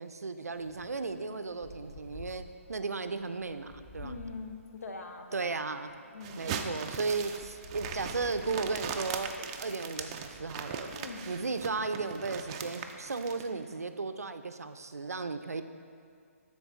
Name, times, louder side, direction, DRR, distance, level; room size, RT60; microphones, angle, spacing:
voice 1, 0.0-4.2 5.3-5.9 6.4-10.9 11.3-15.6, right 4 dB, 90° right, 9 dB, 0.4 m, -35 dB
Wind, 0.5-10.4, left 1 dB, 25° left, 1.4 m, -51 dB
voice 2, 4.0-5.7 6.1-6.6 10.9-11.3, left 3 dB, 75° left, 5 dB, 0.8 m, -43 dB
sound 1, 6.2-13.5, right 7 dB, 25° right, 0.3 m, -40 dB
11.5 x 3.9 x 3.6 m, 2.3 s
figure-of-eight pair, 145°, 8 cm